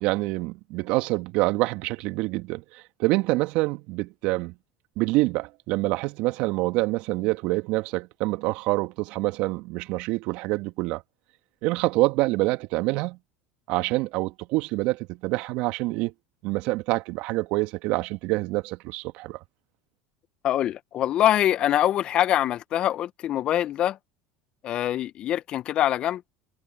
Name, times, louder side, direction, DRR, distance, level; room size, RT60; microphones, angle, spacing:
voice 1, 0.0-4.5 5.0-11.0 11.6-13.2 13.7-16.1 16.4-19.4, right 21 dB, 60° right, 2.0 m, -26 dB
voice 2, 20.4-24.0 24.6-26.2, left 12 dB, 45° left, 1.6 m, -24 dB
hypercardioid pair, 80°, 2 cm